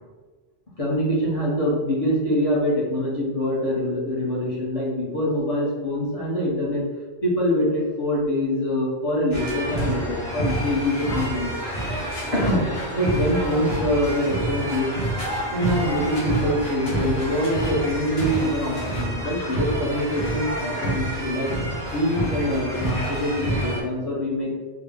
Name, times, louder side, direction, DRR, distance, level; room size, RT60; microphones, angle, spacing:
voice 1, 0.8-6.8 7.2-11.5 12.3-12.6 12.9-14.9 15.5-21.5 21.9-24.6, left 1 dB, 35° left, -5 dB, 1.0 m, -24 dB
sound 1, 9.3-23.8, right 1 dB, 70° left, 1.2 m, -28 dB
3.7 x 2.2 x 3.5 m, 1.3 s
omnidirectional pair, 1.1 m